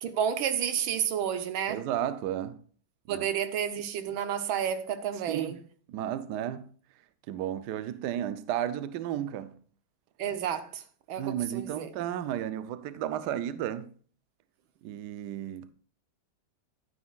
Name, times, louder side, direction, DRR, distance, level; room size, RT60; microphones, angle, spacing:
voice 1, 0.0-1.8 3.1-5.6 10.2-10.8 11.1-11.9, right 8 dB, 85° right, 1.7 m, -31 dB
voice 2, 1.7-2.6 3.1-3.3 5.3-5.6 5.9-6.7 7.3-9.5 11.2-13.9 14.8-15.7, right 11 dB, 70° right, 1.1 m, -33 dB
11.5 x 9.4 x 2.3 m
omnidirectional pair, 2.1 m